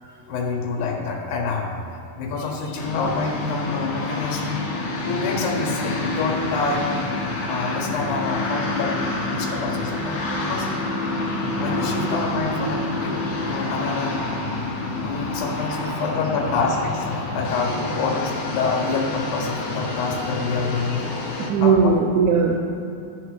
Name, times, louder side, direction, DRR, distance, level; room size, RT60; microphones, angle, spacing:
voice 1, 0.3-1.7 2.2-4.6 5.0-7.1 7.5-9.0 9.3-10.7 11.3-14.2 15.0-21.1 21.6-21.9, left 4 dB, 90° left, 1 dB, 2.9 m, -27 dB
sound 1, 2.8-21.5, left 2 dB, 60° left, 2.6 m, -28 dB
voice 2, 21.5-22.6, right 5 dB, 85° right, 1 dB, 1.7 m, -18 dB
13.0 x 7.5 x 3.2 m, 2.5 s
omnidirectional pair, 4.0 m